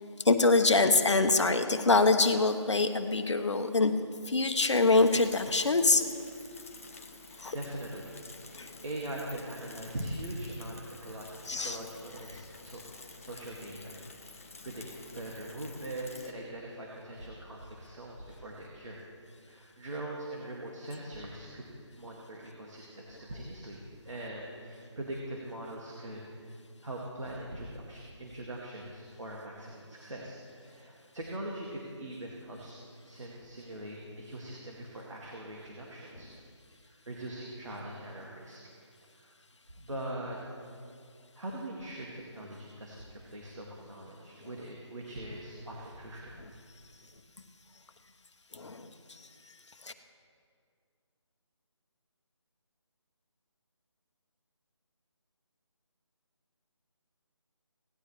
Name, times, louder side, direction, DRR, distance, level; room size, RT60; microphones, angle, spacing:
voice 1, 0.2-4.0 4.3-6.0 7.4-7.5 8.6-8.7 11.5-11.8 48.5-48.9 49.8-49.9, left 3 dB, 70° left, 6 dB, 1.1 m, -24 dB
Bicycle / Mechanisms, 4.5-16.3, left 3 dB, 30° left, 0.7 m, -50 dB
voice 2, 6.5-14.3 14.6-14.9 15.1-19.0 19.4-21.7 22.0-26.5 26.8-32.8 33.0-36.3 36.7-38.6 39.2-39.3 39.8-40.4 41.4-46.4, right 1 dB, 80° right, -3 dB, 2.1 m, -42 dB
17.5 x 11.5 x 3.3 m, 2.3 s
figure-of-eight pair, 175°, 16 cm